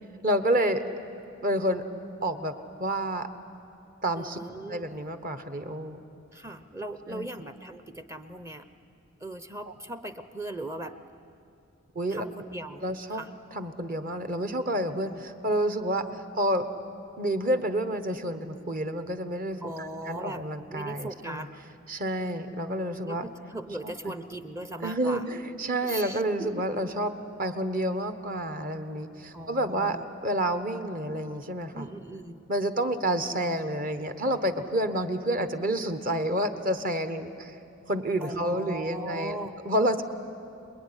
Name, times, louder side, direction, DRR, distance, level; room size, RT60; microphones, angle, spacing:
voice 1, 0.2-0.8 1.4-1.8 2.2-2.5 2.8-3.3 4.0-4.4 4.7-6.0 7.1-7.3 11.9-12.2 12.8-13.2 13.5-16.0 16.3-16.7 17.2-21.5 21.9-23.2 24.0-24.1 24.8-27.1 27.4-30.0 30.2-31.9 32.5-37.6 37.9-39.4 39.6-40.0, right 1 dB, 40° right, 9 dB, 1.2 m, -29 dB
voice 2, 4.2-4.9 6.3-8.7 9.2-10.9 12.1-12.8 13.1-13.3 15.0-15.2 15.9-16.0 19.6-20.4 20.7-21.5 23.0-25.3 25.8-26.8 29.3-30.0 31.7-32.4 38.2-39.5, right 1 dB, 15° right, 10 dB, 0.7 m, -38 dB
26.5 x 21.0 x 9.9 m, 2.7 s
head